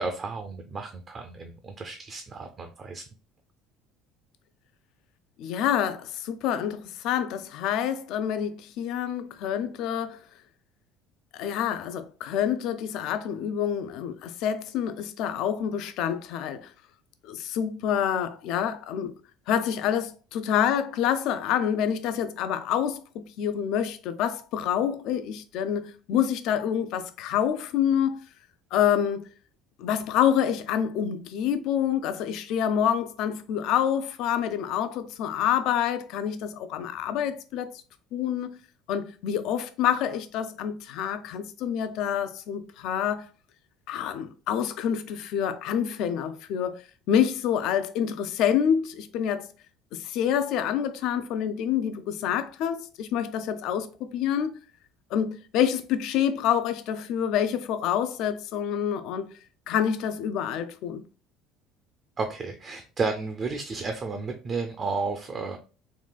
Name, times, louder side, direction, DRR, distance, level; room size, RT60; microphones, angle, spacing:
voice 1, 0.0-3.0 62.2-65.6, right 4 dB, 35° right, 0.4 m, -32 dB
voice 2, 5.4-10.2 11.3-16.7 17.2-19.1 19.5-28.2 28.7-29.3 29.8-37.7 38.1-38.6 38.9-43.2 43.9-46.7 47.1-49.5 49.9-54.5 55.1-59.3 59.7-61.0, left 9 dB, 70° left, 0.4 m, -27 dB
3.7 x 2.4 x 2.2 m
supercardioid pair, 105°, 0 cm